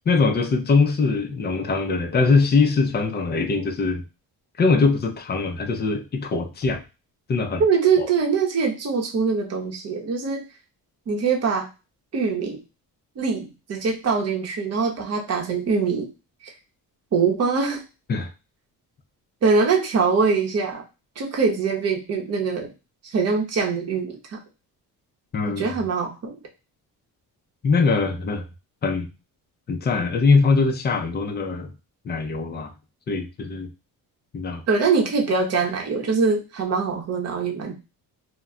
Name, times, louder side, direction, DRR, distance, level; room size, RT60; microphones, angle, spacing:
voice 1, 0.1-4.0 4.6-6.8 7.3-7.6 8.0-8.1 18.1-18.3 25.3-25.6 27.6-28.5 28.8-29.1 29.7-31.7 32.0-32.7 33.1-33.7 34.3-34.6, left 4 dB, 30° left, 6 dB, 0.4 m, -22 dB
voice 2, 7.6-10.4 11.1-11.7 12.1-12.6 13.2-16.1 16.4-16.5 17.1-17.8 19.4-20.8 21.2-22.7 23.0-24.4 25.5-26.3 34.7-37.7, right 5 dB, 40° right, 1 dB, 0.8 m, -23 dB
2.2 x 2.1 x 3.6 m, 0.28 s
cardioid pair, 135°, 37 cm